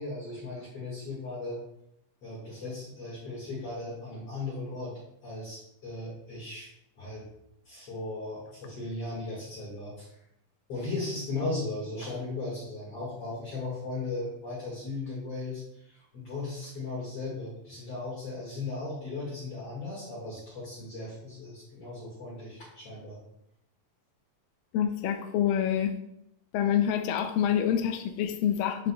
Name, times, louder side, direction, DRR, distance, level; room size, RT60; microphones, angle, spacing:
voice 1, 0.0-1.6 2.2-4.9 5.2-7.2 7.6-10.0 10.7-23.2, left 2 dB, 45° left, -8 dB, 2.7 m, -37 dB
voice 2, 24.7-25.9 26.5-28.9, left 9 dB, 85° left, 5 dB, 2.3 m, -27 dB
9.7 x 5.1 x 2.3 m, 0.79 s
omnidirectional pair, 4.0 m